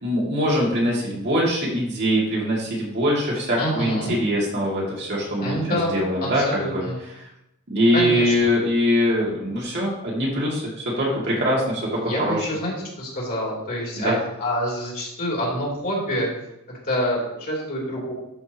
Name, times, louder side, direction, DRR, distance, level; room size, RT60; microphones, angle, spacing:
voice 1, 0.0-6.8 7.2-7.3 7.7-12.4 13.9-14.2, equal, 55° right, -5 dB, 2.5 m, -23 dB
voice 2, 3.6-4.1 5.4-7.0 7.9-8.5 12.0-16.3 16.7-18.1, equal, 45° left, -4 dB, 3.3 m, -27 dB
11.5 x 5.4 x 3.1 m, 0.86 s
head